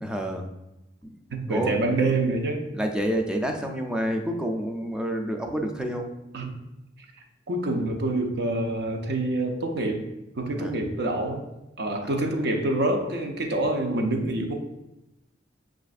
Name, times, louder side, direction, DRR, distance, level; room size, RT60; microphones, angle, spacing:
voice 1, 0.0-0.5 1.0-1.1 1.5-1.8 2.7-6.2 10.6-10.7 12.0-12.1, equal, 5° right, 3 dB, 0.3 m, -28 dB
voice 2, 1.3-2.7 6.3-6.6 7.5-10.1 10.4-11.4 11.8-14.5, right 2 dB, 65° right, 4 dB, 0.5 m, -26 dB
6.2 x 2.5 x 2.4 m, 0.93 s
head